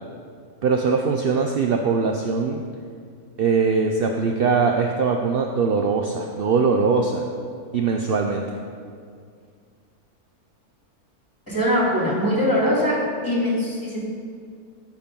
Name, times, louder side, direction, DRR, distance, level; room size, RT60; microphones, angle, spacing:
voice 1, 0.6-2.6 3.4-7.3 7.7-8.4, right 5 dB, 60° right, 3 dB, 0.6 m, -21 dB
voice 2, 11.5-13.0 13.2-14.0, equal, 10° left, -6 dB, 2.7 m, -21 dB
13.5 x 5.2 x 5.3 m, 2.2 s
omnidirectional pair, 1.6 m